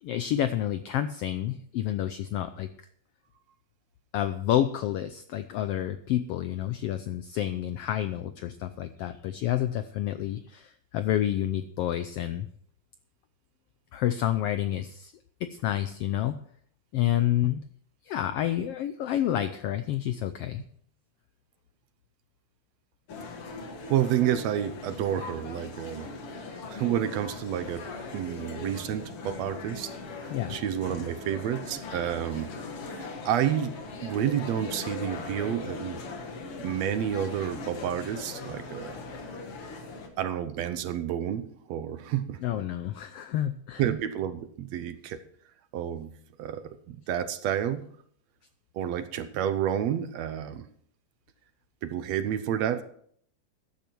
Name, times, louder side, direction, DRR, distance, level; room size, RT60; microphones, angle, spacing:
voice 1, 0.0-2.7 4.1-12.5 13.9-15.1 15.4-16.4 16.9-17.6 18.0-20.6 30.3-30.6 42.4-43.8, left 12 dB, 80° left, 11 dB, 1.3 m, -29 dB
sound 1, 23.1-40.1, left 3 dB, 55° left, 2.4 m, -40 dB
voice 2, 23.9-26.1 26.7-27.9 28.1-29.9 30.2-32.6 32.9-36.0 36.6-39.0 40.2-42.4 43.8-45.2 45.7-47.9 48.7-50.7 51.8-52.8, right 10 dB, 70° right, 11 dB, 1.9 m, -30 dB
14.5 x 10.5 x 4.6 m, 0.62 s
omnidirectional pair, 3.4 m